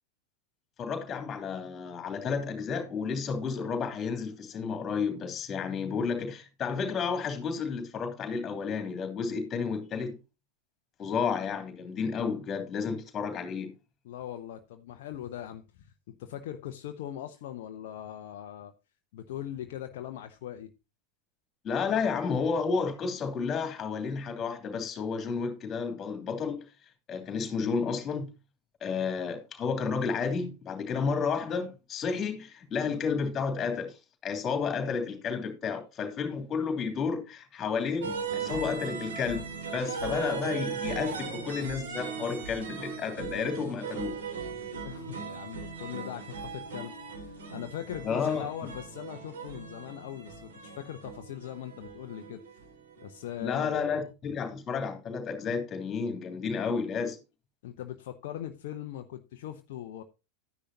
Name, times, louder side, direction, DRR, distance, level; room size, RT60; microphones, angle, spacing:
voice 1, 0.8-10.2 11.0-13.7 21.6-26.6 27.1-28.3 28.8-34.0 34.2-44.2 48.0-48.5 53.4-57.2, left 5 dB, 25° left, 3.1 m, -31 dB
voice 2, 14.0-18.7 19.1-20.7 44.8-52.4 53.0-53.8 57.6-60.0, left 11 dB, 50° left, 0.9 m, -40 dB
sound 1, 38.0-53.8, right 5 dB, 65° right, 3.3 m, -38 dB
12.5 x 10.0 x 2.8 m
figure-of-eight pair, 90°, 0 cm